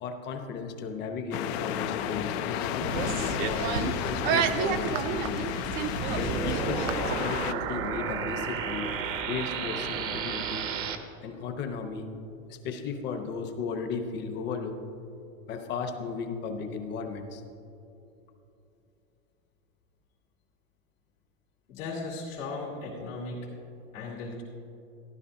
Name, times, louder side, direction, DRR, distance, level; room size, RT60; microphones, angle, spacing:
voice 1, 0.0-5.5 6.1-8.9 9.3-10.6 11.2-12.1 12.5-14.8 15.5-17.4, left 5 dB, 30° left, 5 dB, 0.9 m, -35 dB
sound 1, 1.3-7.5, left 11 dB, 55° left, 0.5 m, -33 dB
sound 2, 2.8-7.1, right 7 dB, 40° right, 0.5 m, -31 dB
sound 3, 6.0-11.0, right 6 dB, 80° right, 1.2 m, -32 dB
voice 2, 21.7-23.5 23.9-24.4, left 3 dB, 80° left, -6 dB, 2.5 m, -37 dB
13.5 x 11.5 x 2.7 m, 2.9 s
supercardioid pair, 145°, 39 cm